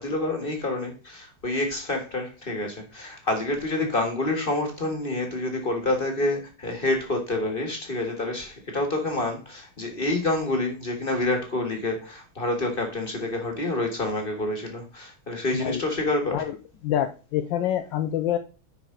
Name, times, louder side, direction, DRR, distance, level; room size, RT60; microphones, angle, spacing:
voice 1, 0.0-16.5, left 2 dB, 30° left, 4 dB, 1.5 m, -28 dB
voice 2, 16.8-18.4, left 11 dB, 70° left, 7 dB, 1.2 m, -26 dB
10.0 x 4.8 x 3.8 m, 0.32 s
omnidirectional pair, 2.4 m